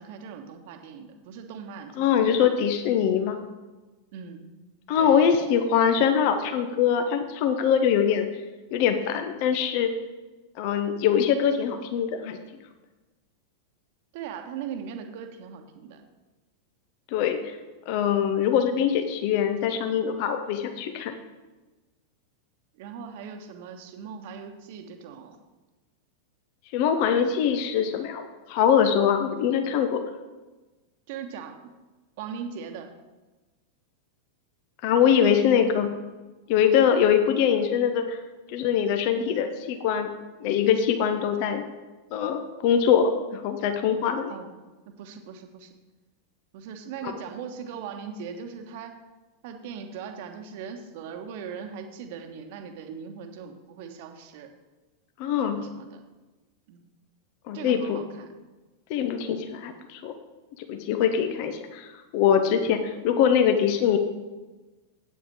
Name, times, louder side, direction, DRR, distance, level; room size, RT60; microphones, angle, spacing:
voice 1, 0.0-2.5 4.1-4.5 4.9-5.2 14.1-16.0 22.7-25.4 31.1-31.7 32.2-32.9 44.3-44.5 44.9-45.7 46.5-49.0 49.4-54.5 55.5-56.0 56.7-56.8 57.5-58.3, right 7 dB, 50° right, 5 dB, 1.2 m, -39 dB
voice 2, 2.0-3.4 4.9-8.3 8.7-9.9 10.6-12.4 17.1-17.6 17.9-21.1 26.7-30.0 34.8-35.9 36.5-38.2 38.5-40.1 40.4-41.6 42.1-44.3 47.0-47.1 55.2-55.6 57.5-58.0 58.9-60.1 60.7-64.0, left 8 dB, 45° left, 7 dB, 0.8 m, -23 dB
8.7 x 5.6 x 7.6 m, 1.2 s
figure-of-eight pair, 90°, 0 cm